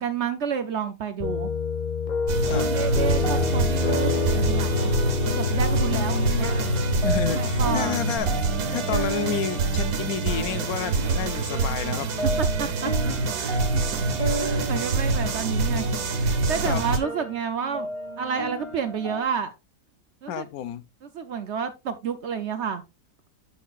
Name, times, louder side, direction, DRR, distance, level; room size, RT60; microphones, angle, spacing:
voice 1, 0.0-1.5 2.6-4.9 5.4-6.5 7.3-8.0 8.6-9.0 12.2-13.6 13.9-14.0 14.4-15.9 16.2-17.9 18.2-19.5 20.2-20.5 21.1-22.8, right 7 dB, 60° right, 0.8 m, -30 dB
sound 1, 1.2-8.2, left 5 dB, 45° left, 0.6 m, -28 dB
sound 2, 2.3-17.0, right 3 dB, 85° right, 1.6 m, -25 dB
sound 3, 2.4-19.2, equal, 20° left, 1.4 m, -34 dB
voice 2, 5.9-6.5 7.0-8.4 8.7-12.1 13.4-13.6 16.6-16.8 20.3-20.9, left 10 dB, 75° left, 1.0 m, -31 dB
8.6 x 6.6 x 2.4 m
omnidirectional pair, 1.7 m